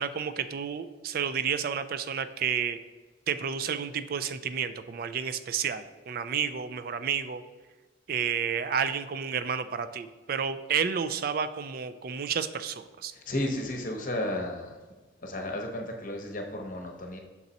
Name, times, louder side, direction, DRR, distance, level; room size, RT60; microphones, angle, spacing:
voice 1, 0.0-2.8 3.3-7.4 8.1-13.1, right 7 dB, 50° right, 12 dB, 0.3 m, -31 dB
voice 2, 13.1-14.8 15.2-17.2, left 1 dB, 45° left, 3 dB, 0.8 m, -33 dB
6.0 x 4.0 x 4.1 m, 1.3 s
head